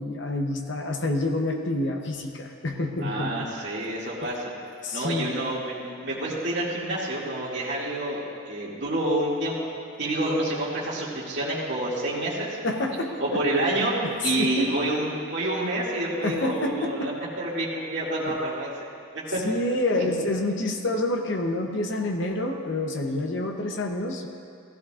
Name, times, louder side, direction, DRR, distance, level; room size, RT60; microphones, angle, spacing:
voice 1, 0.0-3.5 4.8-5.3 12.6-13.4 14.0-14.1 14.4-14.7 16.2-17.1 18.3-18.4 19.4-24.3, left 2 dB, 55° left, 3 dB, 0.9 m, -28 dB
voice 2, 3.0-4.4 4.9-8.2 8.5-9.5 10.0-12.6 13.2-13.9 14.2-18.7 19.1-19.4 19.9-20.1, right 1 dB, 55° right, -7 dB, 2.4 m, -28 dB
15.0 x 15.0 x 2.5 m, 2.5 s
head